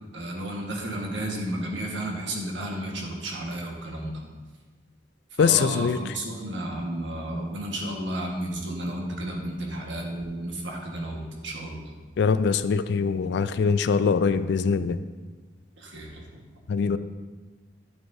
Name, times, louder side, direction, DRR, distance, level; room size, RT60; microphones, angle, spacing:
voice 1, 0.1-4.2 5.4-11.9 15.8-16.4, right 1 dB, 65° right, 0 dB, 1.5 m, -32 dB
voice 2, 5.4-6.0 12.2-15.0 16.7-17.0, left 5 dB, 60° left, 13 dB, 0.3 m, -23 dB
11.0 x 7.7 x 2.7 m, 1.3 s
head